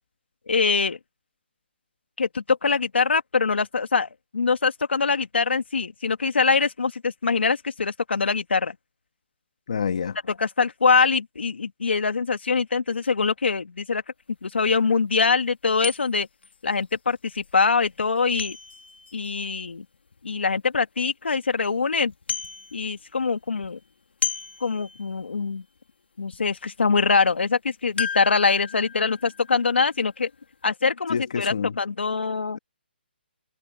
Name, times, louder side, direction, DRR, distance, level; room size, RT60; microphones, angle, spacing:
voice 1, 0.5-1.0 2.2-8.7 10.3-14.0 14.4-16.3 16.6-18.6 19.1-19.8 20.2-22.1 22.7-23.8 24.6-25.6 26.2-30.3 30.6-32.6, left 4 dB, 90° left, 2.6 m, -23 dB
voice 2, 9.7-10.2 31.1-31.8, left 6 dB, 40° left, 1.5 m, -27 dB
sound 1, 14.3-14.4 14.9-15.0 15.8-20.5 21.0-21.1 21.4-21.8 22.0-23.2 23.4-25.4 25.8-25.9 26.3-26.5 28.0-30.4 30.6-30.7, left 7 dB, 70° left, 1.9 m, -35 dB
hypercardioid pair, 180°, 6 cm